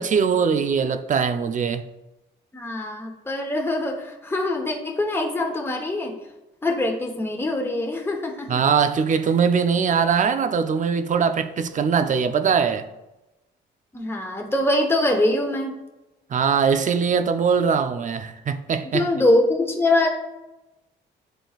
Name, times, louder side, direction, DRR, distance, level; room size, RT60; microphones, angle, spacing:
voice 1, 0.0-1.9 8.5-12.9 16.3-19.1, right 6 dB, 40° right, 0.5 m, -21 dB
voice 2, 2.5-6.1 6.6-8.6 13.9-15.8 18.9-20.1, left 1 dB, 10° left, 1.0 m, -23 dB
10.0 x 3.8 x 2.4 m
cardioid pair, 90°, 20 cm